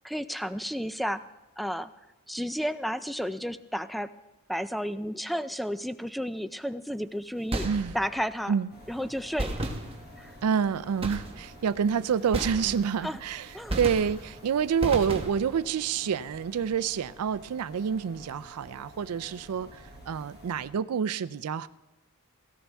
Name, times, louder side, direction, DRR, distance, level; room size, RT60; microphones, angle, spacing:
voice 1, 0.0-1.2 1.6-1.9 2.3-4.1 4.5-7.7 7.9-8.5 8.9-9.6 10.2-10.4 13.0-13.2 13.5-13.8, equal, ahead, 12 dB, 0.4 m, -32 dB
sound 1, 7.5-8.2 9.4-10.3 11.0-11.6 12.3-13.1 13.7-14.4 14.8-15.6, right 1 dB, 25° right, 1.2 m, -33 dB
voice 2, 7.6-7.9 8.5-8.7 10.4-21.7, right 7 dB, 90° right, 16 dB, 0.4 m, -28 dB
sound 2, 8.7-20.7, equal, 45° left, 4.6 m, -50 dB
17.5 x 16.0 x 3.4 m, 1.0 s
head